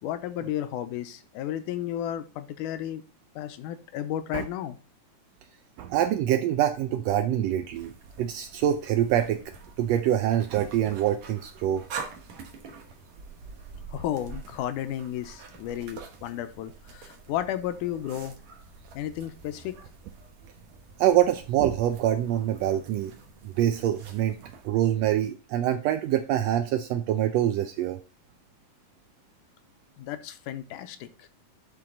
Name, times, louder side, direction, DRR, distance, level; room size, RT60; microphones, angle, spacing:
voice 1, 0.0-3.0 3.4-4.8 13.9-18.4 18.9-19.8 30.0-31.3, left 11 dB, 85° left, 10 dB, 2.2 m, -33 dB
voice 2, 5.8-7.9 8.2-9.4 9.8-11.8 21.0-23.1 23.4-28.0, right 11 dB, 85° right, 7 dB, 1.4 m, -25 dB
sound 1, 7.7-24.7, right 5 dB, 65° right, 2.3 m, -46 dB
10.5 x 3.9 x 3.8 m, 0.36 s
omnidirectional pair, 3.6 m